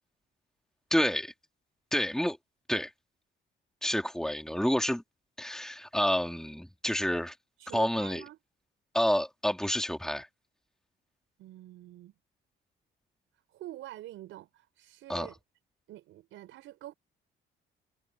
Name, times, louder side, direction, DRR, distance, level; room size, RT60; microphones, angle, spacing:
voice 1, 0.9-1.3 1.9-2.4 2.7-2.9 3.8-5.0 5.4-7.3 7.7-8.2 8.9-10.3 15.1-15.3, equal, 5° left, 3.3 m, -29 dB
voice 2, 7.6-8.4 11.4-12.1 13.5-15.3 15.9-16.9, right 14 dB, 90° right, 5.6 m, -46 dB
cardioid pair, 90°, 20 cm